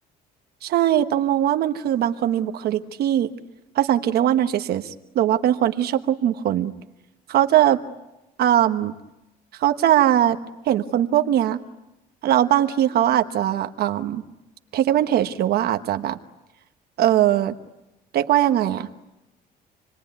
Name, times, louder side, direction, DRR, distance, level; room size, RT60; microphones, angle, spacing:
voice 1, 0.6-3.3 3.7-6.7 7.3-7.8 8.4-8.9 9.6-10.4 10.6-11.6 12.2-14.2 14.7-16.2 17.0-17.5 18.1-18.9, right 11 dB, 65° right, 7 dB, 1.2 m, -20 dB
28.0 x 21.5 x 9.4 m, 0.96 s
cardioid pair, 110°, 17 cm